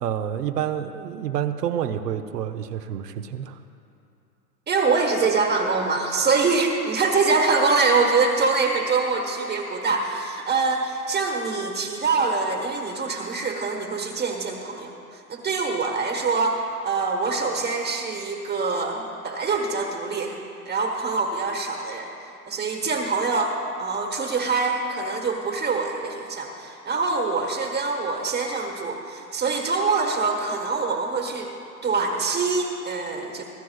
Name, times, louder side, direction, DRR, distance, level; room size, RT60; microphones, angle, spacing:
voice 1, 0.0-3.6, right 9 dB, 80° right, 7 dB, 0.9 m, -28 dB
voice 2, 4.7-14.9 15.3-20.4 20.6-22.1 22.5-31.5 31.8-33.4, right 4 dB, 20° right, 2 dB, 1.3 m, -24 dB
26.0 x 13.0 x 2.4 m, 2.7 s
hypercardioid pair, 105°, 48 cm